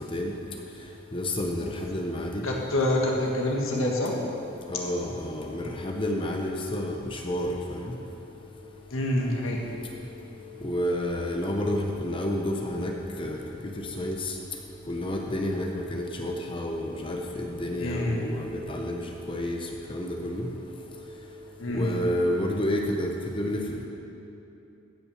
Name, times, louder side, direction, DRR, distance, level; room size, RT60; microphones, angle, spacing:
voice 1, 1.1-1.6 1.9-2.4 4.7-6.9 7.2-7.5 10.6-12.9 13.2-13.4 14.0-14.2 14.9-17.2 17.6-18.4 18.7-19.0 19.3-19.6 19.9-20.4 21.7-23.1 23.4-23.6, left 1 dB, 25° left, 1 dB, 0.8 m, -29 dB
voice 2, 2.4-4.1 8.9-9.6 17.8-18.2 21.6-22.0, left 1 dB, 90° left, -1 dB, 1.7 m, -26 dB
15.0 x 6.2 x 6.4 m, 2.8 s
head